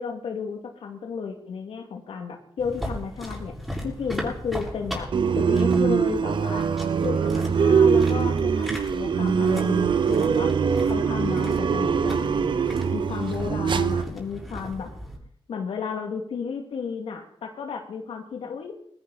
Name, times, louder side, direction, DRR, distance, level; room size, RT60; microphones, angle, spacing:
voice 1, 0.0-3.5 3.8-6.7 7.0-10.5 10.8-12.6 12.9-14.9 15.5-18.7, left 6 dB, 90° left, 3 dB, 2.4 m, -33 dB
sound 1, 2.6-15.2, equal, 5° right, 7.1 m, -37 dB
sound 2, 5.1-14.0, right 6 dB, 60° right, 0.8 m, -22 dB
20.5 x 14.5 x 4.2 m, 0.66 s
cardioid pair, 85°, 9 cm